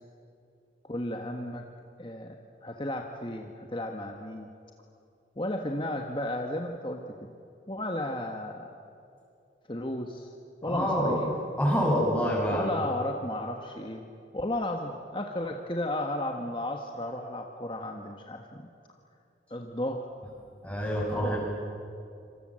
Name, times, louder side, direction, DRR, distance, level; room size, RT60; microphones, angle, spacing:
voice 1, 0.8-1.6 2.0-2.3 2.6-4.5 5.4-7.3 7.7-8.7 9.7-10.3 10.6-11.3 12.5-14.1 14.3-18.6 19.5-20.1 21.1-21.4, left 1 dB, 30° left, 3 dB, 1.5 m, -34 dB
voice 2, 10.6-11.2 11.6-12.7 20.6-21.4, equal, 5° left, -2 dB, 7.3 m, -26 dB
27.0 x 26.5 x 7.8 m, 2.6 s
head